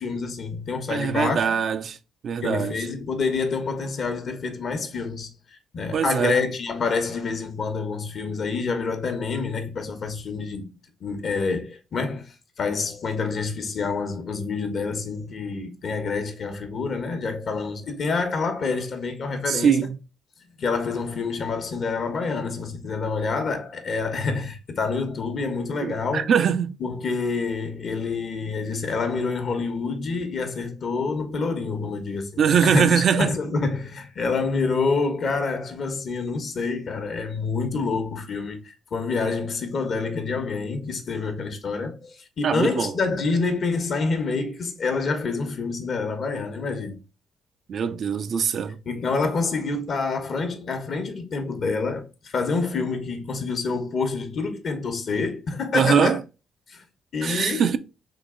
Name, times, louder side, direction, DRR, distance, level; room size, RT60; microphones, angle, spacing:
voice 1, 0.0-1.4 2.4-10.6 11.0-19.7 20.6-26.3 26.8-47.0 48.9-56.2 56.7-56.8 57.1-57.8, left 4 dB, 55° left, 1.0 m, -27 dB
voice 2, 0.9-2.0 2.2-2.8 5.9-6.4 19.5-20.0 25.8-26.8 32.4-33.4 42.4-43.0 47.7-48.8 55.7-56.2 57.2-57.8, right 7 dB, 60° right, 0.4 m, -22 dB
3.8 x 3.0 x 3.7 m
cardioid pair, 90°, 0 cm